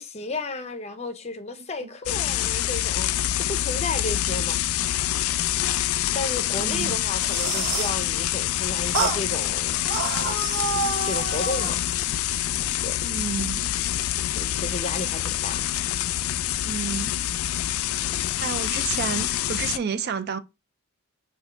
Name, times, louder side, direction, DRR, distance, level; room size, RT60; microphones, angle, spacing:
voice 1, 0.0-4.6 6.1-9.8 10.5-11.8 12.8-13.0 14.3-15.7 18.0-18.3, left 2 dB, 30° left, 0.6 m, -33 dB
sound 1, 2.1-19.8, left 13 dB, 70° left, 0.3 m, -26 dB
voice 2, 6.5-6.9 13.0-13.6 16.6-17.1 18.4-20.4, right 6 dB, 45° right, 0.4 m, -30 dB
sound 2, 7.0-8.0 8.9-9.2 9.8-11.8, right 3 dB, 80° right, 1.1 m, -28 dB
5.9 x 2.7 x 3.3 m
head